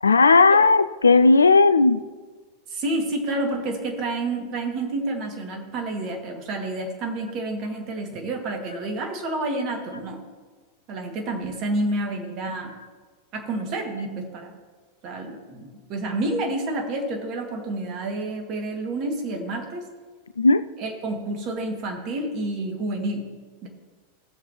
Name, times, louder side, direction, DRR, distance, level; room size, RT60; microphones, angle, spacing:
voice 1, 0.0-2.0 20.4-20.7, left 3 dB, 75° left, 14 dB, 0.3 m, -16 dB
voice 2, 2.7-10.2 10.9-12.8 13.3-14.5 15.0-19.8 20.8-23.3 23.6-23.7, right 2 dB, 40° right, 2 dB, 2.0 m, -29 dB
17.5 x 6.9 x 3.1 m, 1.4 s
figure-of-eight pair, 90°, 0 cm